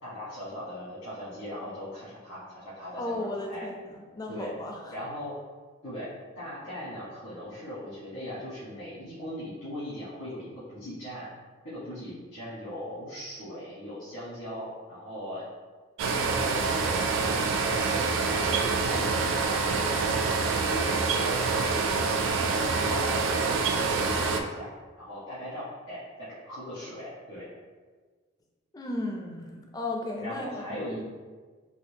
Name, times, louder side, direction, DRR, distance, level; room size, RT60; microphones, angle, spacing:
voice 1, 0.0-3.7 4.3-4.5 4.9-5.3 5.8-11.3 11.6-15.5 16.0-19.8 20.2-20.4 20.7-24.7 25.0-27.5 30.2-31.0, equal, 85° left, -12 dB, 1.3 m, -39 dB
voice 2, 3.0-5.0 28.7-30.5, left 2 dB, 20° left, 1 dB, 0.3 m, -35 dB
sound 1, 16.0-24.4, right 4 dB, 70° right, 0.3 m, -26 dB
4.2 x 2.4 x 2.7 m, 1.4 s
head